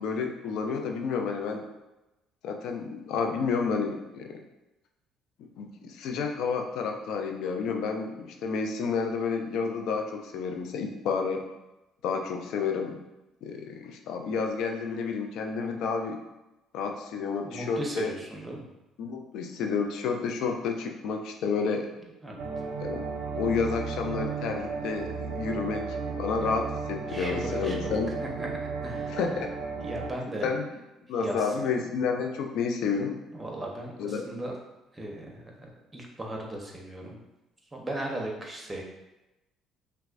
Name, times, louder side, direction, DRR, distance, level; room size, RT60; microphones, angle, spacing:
voice 1, 0.0-1.7 2.4-4.4 5.6-11.5 12.0-13.0 13.4-16.2 16.7-18.1 19.0-21.9 22.8-23.0 23.3-28.1 29.1-29.5 30.4-30.6 31.1-33.2 34.0-34.2, left 5 dB, 65° left, 4 dB, 0.5 m, -30 dB
voice 2, 17.4-18.7 22.2-22.5 27.1-27.9 28.2-29.2 29.8-30.5 31.2-31.9 33.3-34.5 34.9-37.2 37.7-38.8, right 1 dB, 20° right, 0 dB, 1.0 m, -37 dB
sound 1, 22.4-30.1, right 4 dB, 60° right, 0.6 m, -34 dB
5.9 x 2.3 x 2.5 m, 0.97 s
hypercardioid pair, 50°, 0 cm